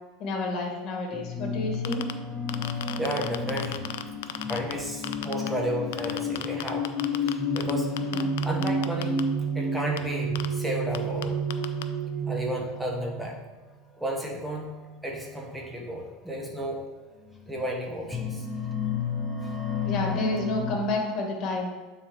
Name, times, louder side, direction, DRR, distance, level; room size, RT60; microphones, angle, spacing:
voice 1, 0.2-2.0 8.1-8.2 19.8-21.7, left 2 dB, 45° left, 1 dB, 1.7 m, -30 dB
sound 1, 1.1-13.4 14.2-14.5 15.7-15.8 16.4-16.5 17.3-20.8, left 1 dB, 10° left, 0.8 m, -31 dB
sound 2, 1.7-2.1 2.5-4.7 5.0-5.5 5.9-7.7 8.0-9.2 10.0-10.1 10.4-10.5 10.9-11.0 11.2-11.3 11.5-11.8, left 14 dB, 85° left, 0.4 m, -33 dB
voice 2, 2.9-3.8 4.5-7.9 8.4-9.2 9.5-11.4 12.3-13.4 14.0-14.8 15.0-16.8 17.5-18.5, equal, 5° right, -1 dB, 1.2 m, -33 dB
9.4 x 4.0 x 3.1 m, 1.3 s
supercardioid pair, 135°, 0 cm